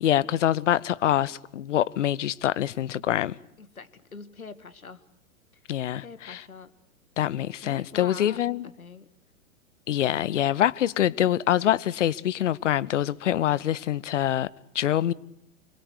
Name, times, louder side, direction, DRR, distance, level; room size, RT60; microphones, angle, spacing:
voice 1, 0.0-3.4 5.7-6.4 7.2-8.7 9.9-14.5 14.7-15.1, left 11 dB, 60° left, 0.9 m, -25 dB
voice 2, 3.6-5.0 5.7-5.8 6.0-6.7 7.6-9.1, left 5 dB, 85° left, 1.8 m, -44 dB
25.5 x 22.5 x 8.2 m
figure-of-eight pair, 115°, 42 cm